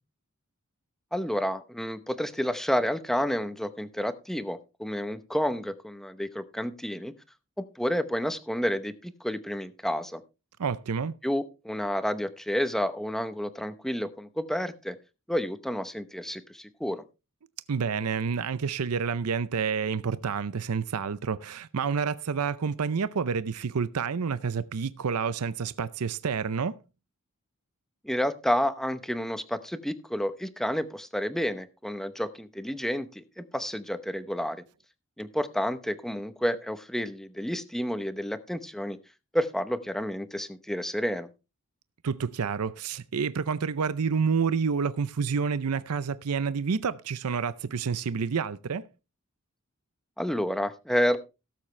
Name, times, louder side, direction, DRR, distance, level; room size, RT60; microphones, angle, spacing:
voice 1, 1.1-7.1 7.8-10.2 11.2-15.0 15.3-17.0 28.0-34.6 35.2-39.0 39.3-41.3 50.2-51.2, equal, ahead, 0.8 m, -30 dB
voice 2, 10.6-11.1 17.7-26.8 42.0-48.9, right 6 dB, 85° right, 0.6 m, -29 dB
17.5 x 7.4 x 3.2 m
head